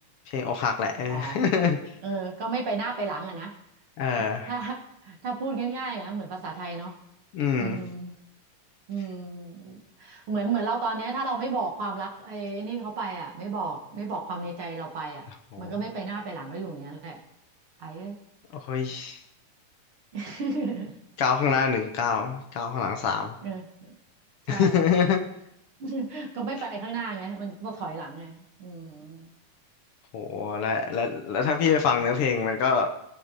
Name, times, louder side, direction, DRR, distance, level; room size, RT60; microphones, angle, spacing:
voice 1, 0.3-1.8 4.0-4.5 7.3-7.8 15.5-15.7 18.6-19.2 21.2-23.3 24.5-25.2 30.1-32.9, left 6 dB, 65° left, 4 dB, 1.5 m, -25 dB
voice 2, 1.1-1.4 2.0-3.6 4.3-7.0 7.6-8.1 8.9-15.3 15.6-17.2 17.8-18.2 20.1-21.0 22.9-23.0 23.4-23.9 24.5-24.8 25.8-29.3, right 4 dB, 50° right, 1 dB, 2.0 m, -33 dB
20.5 x 8.9 x 4.1 m, 0.82 s
omnidirectional pair, 3.7 m